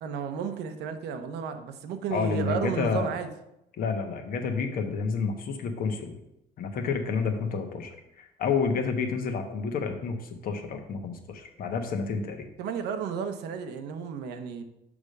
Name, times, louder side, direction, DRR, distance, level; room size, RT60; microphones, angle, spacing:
voice 1, 0.0-3.3 12.6-14.6, right 6 dB, 80° right, 8 dB, 0.8 m, -33 dB
voice 2, 2.1-3.1 3.8-6.2 6.6-7.9 8.2-12.5, left 5 dB, 60° left, 5 dB, 1.2 m, -29 dB
6.1 x 5.1 x 5.3 m, 0.84 s
cardioid pair, 110°, 17 cm